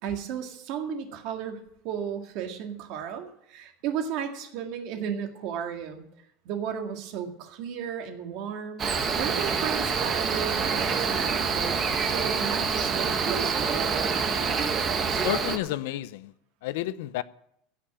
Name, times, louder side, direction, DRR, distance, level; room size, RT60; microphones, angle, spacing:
voice 1, 0.0-6.0 6.4-14.2, right 8 dB, 45° right, 1.9 m, -34 dB
Cricket, 8.8-15.6, right 5 dB, 20° right, 1.1 m, -26 dB
voice 2, 15.2-16.3 16.6-17.2, left 14 dB, 65° left, 0.6 m, -30 dB
16.5 x 5.8 x 8.7 m
supercardioid pair, 175°, 0 cm